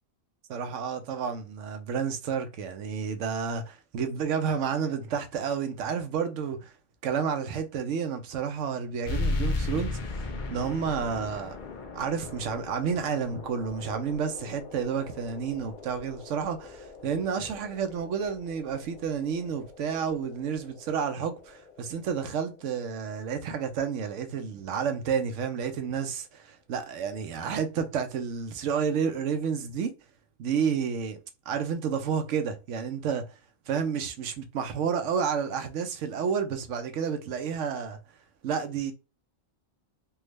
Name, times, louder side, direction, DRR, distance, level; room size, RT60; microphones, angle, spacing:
voice 1, 0.5-6.7 7.0-11.6 11.9-29.9 30.4-31.2 31.5-33.3 33.7-38.0 38.4-38.9, right 6 dB, 70° right, 0.9 m, -30 dB
sound 1, 9.0-24.1, left 2 dB, 50° left, 0.6 m, -38 dB
3.4 x 2.3 x 3.1 m
omnidirectional pair, 1.3 m